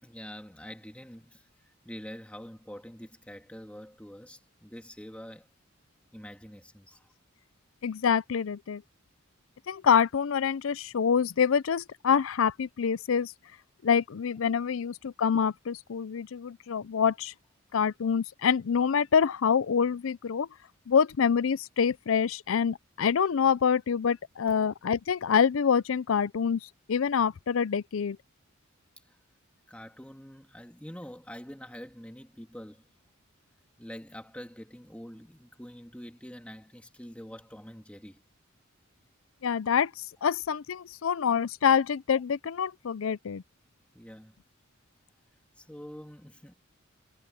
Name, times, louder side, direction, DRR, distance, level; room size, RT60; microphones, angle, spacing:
voice 1, 0.0-1.5 1.8-5.5 6.1-7.1 29.1-29.2 29.7-32.8 33.8-38.2 43.9-44.3 45.6-46.5, equal, 5° left, 2.2 m, -45 dB
voice 2, 7.8-8.8 9.7-13.3 13.8-17.3 17.7-20.5 20.9-28.2 39.4-43.4, left 7 dB, 75° left, 0.5 m, -26 dB
head